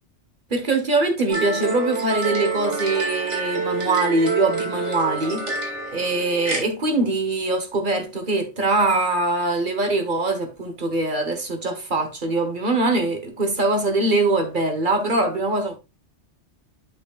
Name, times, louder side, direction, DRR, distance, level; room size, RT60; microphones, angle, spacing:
voice 1, 0.5-15.7, right 2 dB, 45° right, 1.5 m, -23 dB
sound 1, 1.3-6.6, right 4 dB, 85° right, 2.7 m, -27 dB
8.1 x 6.4 x 2.4 m
omnidirectional pair, 1.2 m